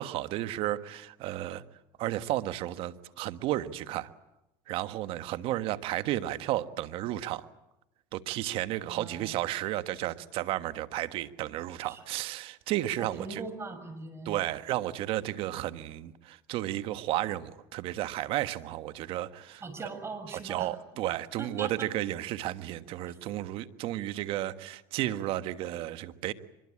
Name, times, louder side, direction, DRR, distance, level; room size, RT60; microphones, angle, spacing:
voice 1, 0.0-1.6 2.0-4.1 4.7-7.5 8.1-13.4 14.2-19.6 20.4-26.3, right 14 dB, 60° right, 12 dB, 1.4 m, -33 dB
voice 2, 8.9-9.3 11.8-12.0 13.0-14.4 19.6-20.7 21.4-21.9 23.1-23.2, right 3 dB, 25° right, 9 dB, 6.3 m, -40 dB
24.5 x 22.5 x 8.7 m, 0.92 s
supercardioid pair, 105°, 10 cm